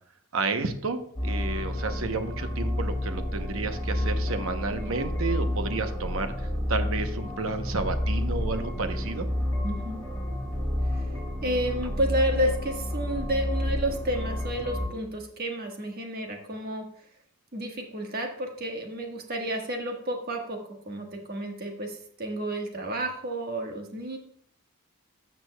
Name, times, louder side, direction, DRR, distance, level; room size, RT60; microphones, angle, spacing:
voice 1, 0.3-9.3, right 3 dB, 65° right, 8 dB, 0.8 m, -31 dB
sound 1, 1.2-14.9, left 1 dB, 10° left, 2.7 m, -30 dB
voice 2, 9.6-10.0 10.9-11.1 11.4-16.8 17.5-20.6 20.8-24.2, right 1 dB, 45° right, 3 dB, 1.4 m, -31 dB
12.5 x 6.8 x 2.2 m, 0.65 s
head